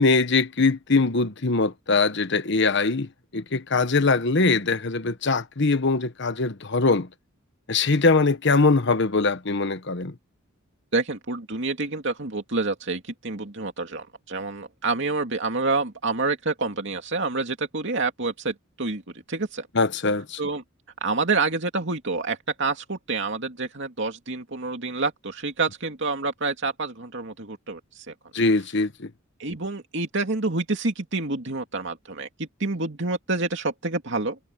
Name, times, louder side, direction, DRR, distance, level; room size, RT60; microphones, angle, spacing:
voice 1, 0.0-7.1 7.7-10.1 19.7-20.4 28.3-29.1, left 3 dB, 55° left, 1.2 m, -22 dB
voice 2, 10.9-19.0 19.3-19.7 20.4-20.6 21.0-28.1 29.4-34.4, right 3 dB, 60° right, 2.7 m, -28 dB
head